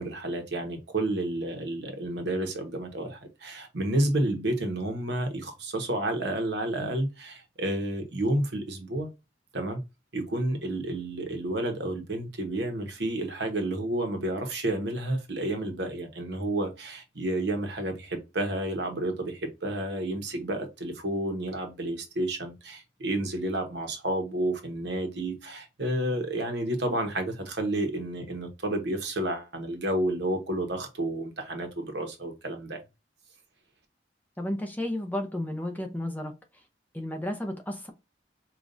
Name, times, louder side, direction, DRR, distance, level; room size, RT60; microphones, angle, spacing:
voice 1, 0.0-9.1 9.5-9.8 10.1-32.8, right 1 dB, 70° right, 1.0 m, -30 dB
voice 2, 34.4-36.3 36.9-37.9, left 1 dB, 10° left, 0.6 m, -32 dB
5.1 x 2.5 x 2.6 m
head